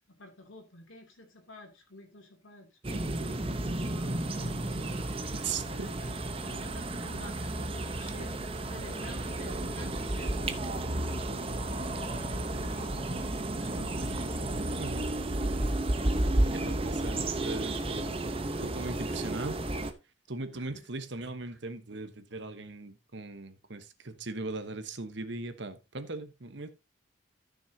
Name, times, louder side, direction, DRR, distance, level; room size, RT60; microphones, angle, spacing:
voice 1, 0.2-5.1 5.7-6.1 6.4-8.4 8.7-10.9 11.2-13.2 13.6-14.3 20.5-20.8, left 2 dB, 80° left, 2.6 m, -51 dB
sound 1, 2.8-19.9, right 1 dB, 25° right, 0.8 m, -32 dB
voice 2, 5.4-5.9 14.8-15.1 16.5-19.6 20.3-26.7, right 3 dB, 60° right, 1.1 m, -39 dB
14.5 x 6.4 x 2.8 m
head